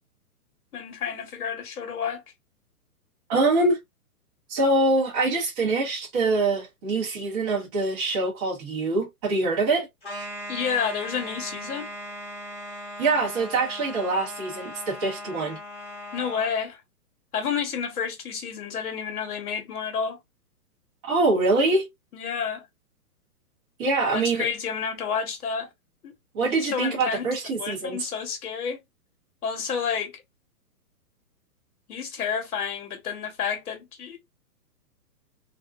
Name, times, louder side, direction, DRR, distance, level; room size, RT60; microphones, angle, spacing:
voice 1, 0.7-2.2 10.5-11.9 16.1-16.8 17.3-20.2 22.1-22.7 24.1-25.7 26.0-26.1 26.5-27.3 27.6-28.8 29.4-30.2 31.9-34.2, left 6 dB, 70° left, 1.2 m, -30 dB
voice 2, 3.3-3.8 4.5-9.9 13.0-15.6 21.1-21.9 23.8-24.4 26.3-28.0, right 2 dB, 15° right, 0.5 m, -24 dB
sound 1, 10.0-16.5, equal, 10° left, 0.8 m, -38 dB
2.4 x 2.1 x 2.4 m
hypercardioid pair, 150°, 46 cm